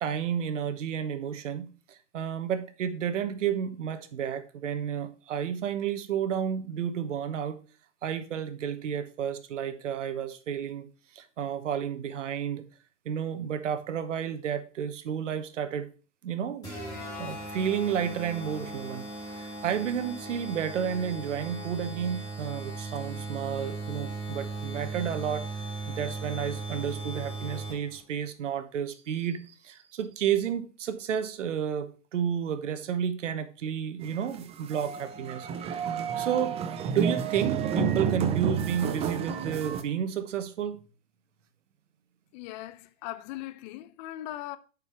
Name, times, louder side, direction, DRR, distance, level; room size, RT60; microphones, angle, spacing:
voice 1, 0.0-7.6 8.0-10.9 11.1-12.6 13.0-15.9 16.2-16.7 17.2-25.4 26.0-36.6 36.8-40.8, right 8 dB, 90° right, 1.1 m, -31 dB
sound 1, 16.6-28.0, right 3 dB, 10° left, 3.4 m, -38 dB
sound 2, 34.0-39.8, right 7 dB, 15° right, 0.5 m, -30 dB
voice 2, 42.3-44.6, left 15 dB, 40° left, 0.6 m, -39 dB
7.2 x 5.4 x 4.4 m
hypercardioid pair, 135°, 36 cm